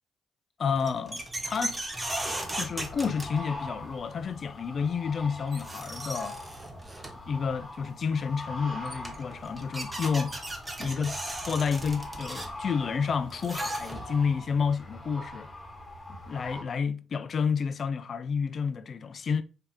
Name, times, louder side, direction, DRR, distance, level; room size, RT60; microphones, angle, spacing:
voice 1, 0.6-1.8 2.5-6.4 7.3-10.4 10.8-11.2 11.5-15.5 16.1-19.4, left 6 dB, 50° left, 0.4 m, -30 dB
sound 1, 0.7-3.8 5.1-5.2 5.5-7.3 8.5-8.6 8.8-14.3, right 1 dB, 15° right, 0.9 m, -37 dB
sound 2, 1.2-16.6, left 1 dB, 20° left, 1.2 m, -43 dB
4.7 x 2.8 x 3.6 m
cardioid pair, 90°, 0 cm